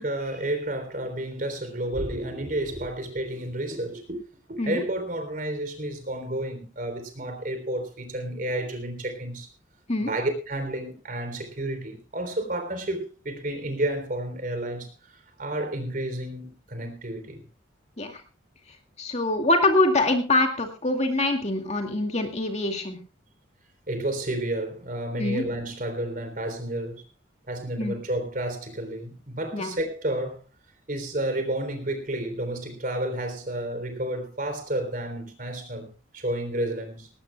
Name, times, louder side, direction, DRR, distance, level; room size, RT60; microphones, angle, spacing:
voice 1, 0.0-4.2 4.5-9.5 10.1-17.4 23.9-27.0 27.5-30.4 30.9-37.1, right 1 dB, 45° right, 3.7 m, -31 dB
voice 2, 19.0-23.0 25.2-25.4 27.8-28.0 29.5-29.7, left 2 dB, 35° left, 2.3 m, -24 dB
19.0 x 18.5 x 2.3 m
head